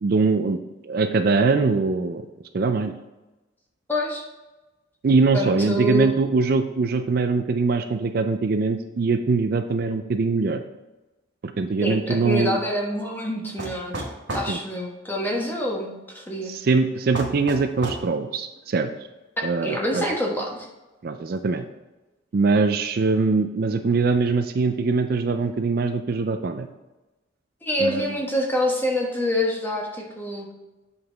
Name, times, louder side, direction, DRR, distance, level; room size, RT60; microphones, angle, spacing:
voice 1, 0.0-0.6 0.8-2.2 2.5-2.9 5.0-10.6 11.4-12.6 14.5-14.6 16.5-18.9 19.4-20.1 21.0-21.7 22.3-26.7 27.8-28.1, right 4 dB, 50° right, 8 dB, 0.4 m, -22 dB
voice 2, 3.9-4.2 5.3-6.1 11.8-14.0 14.3-16.5 19.6-20.6 27.6-30.5, equal, 10° left, -1 dB, 1.1 m, -26 dB
sound 1, 13.6-14.5 17.1-18.1, right 1 dB, 70° right, 1.3 m, -31 dB
7.8 x 5.5 x 3.4 m, 1.1 s
head